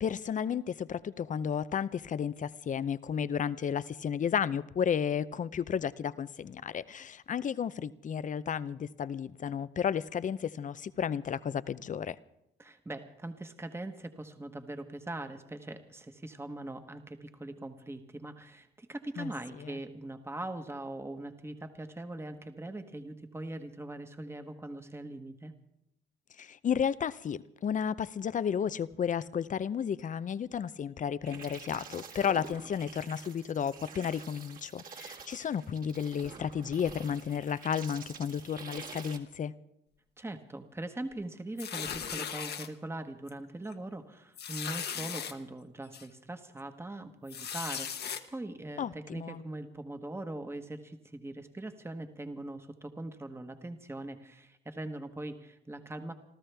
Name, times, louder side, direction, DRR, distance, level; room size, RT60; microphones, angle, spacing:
voice 1, 0.0-12.2 19.2-19.3 19.6-19.8 26.4-39.5 48.8-49.4, left 8 dB, 40° left, 0.6 m, -33 dB
voice 2, 12.6-25.5 40.2-56.1, right 2 dB, 10° right, 1.2 m, -41 dB
sound 1, 31.3-39.2, right 5 dB, 45° right, 1.9 m, -48 dB
sound 2, 41.6-42.7 43.3-43.4 43.7-43.8 44.4-45.3 45.9-46.0 47.3-48.2, left 8 dB, 55° left, 1.1 m, -37 dB
28.5 x 13.5 x 3.4 m
cardioid pair, 90°, 20 cm